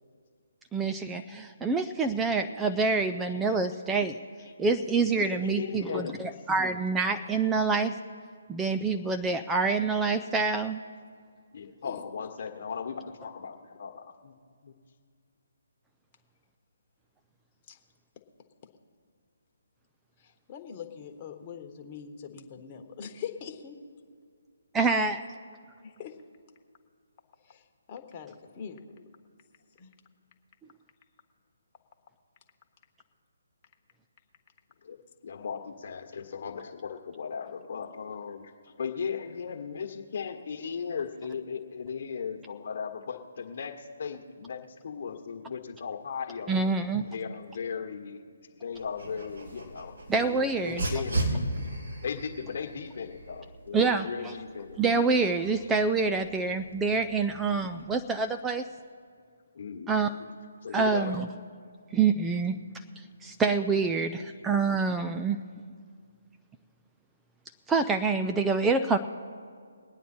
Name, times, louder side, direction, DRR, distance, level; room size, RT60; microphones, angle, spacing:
voice 1, 0.7-4.2 4.6-8.0 8.5-10.8 24.8-25.1 46.5-47.1 50.1-50.9 53.7-54.3 54.8-58.6 59.9-60.1 60.7-61.3 61.9-62.6 63.0-65.4 67.7-69.0, right 4 dB, 10° right, 6 dB, 0.4 m, -26 dB
voice 2, 5.2-6.2 11.5-14.3 14.6-14.7 34.8-35.0 35.2-38.5 38.8-46.6 46.9-48.2 48.5-49.9 50.2-51.5 52.0-54.8 59.5-60.0 60.6-61.2, left 6 dB, 50° left, 4 dB, 1.4 m, -37 dB
voice 3, 20.5-23.8 26.0-26.1 27.5-27.6 27.9-28.8 29.8-29.9, left 7 dB, 30° left, 3 dB, 1.3 m, -42 dB
Dog, 48.7-57.8, right 1 dB, 70° right, 4.2 m, -37 dB
21.0 x 9.2 x 4.4 m, 2.1 s
figure-of-eight pair, 145°, 0 cm